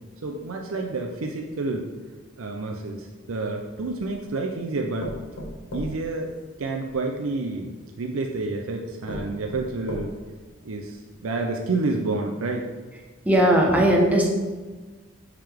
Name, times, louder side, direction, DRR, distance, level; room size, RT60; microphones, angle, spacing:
voice 1, 0.2-1.9 2.4-5.1 5.7-6.3 6.6-10.1 10.6-12.7, right 3 dB, 75° right, 2 dB, 0.5 m, -29 dB
sound 1, 4.1-4.2 5.0-7.0 7.9-8.0 8.6-8.7 9.1-10.4 10.9-11.0 11.3-11.4, equal, 80° left, 1.4 m, -37 dB
voice 2, 13.2-14.3, right 1 dB, 5° right, -1 dB, 0.8 m, -18 dB
8.8 x 3.6 x 3.4 m, 1.3 s
head